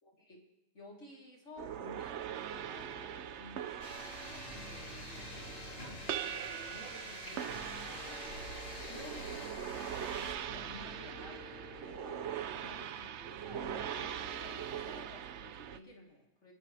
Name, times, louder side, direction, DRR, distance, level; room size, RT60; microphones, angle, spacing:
voice 1, 0.0-0.4 0.7-5.3 6.1-8.2 8.6-9.9 10.5-16.5, left 1 dB, 45° left, -2 dB, 3.7 m, -54 dB
sound 1, 1.6-15.8, right 9 dB, 65° right, 0.7 m, -42 dB
sound 2, 2.5-3.7 4.4-6.4 7.4-10.1 10.4-13.1 13.4-15.0, left 1 dB, 85° right, 3.3 m, -52 dB
sound 3, 3.8-10.3, left 1 dB, 75° left, 5.4 m, -46 dB
26.0 x 13.0 x 3.3 m, 0.98 s
omnidirectional pair, 1.7 m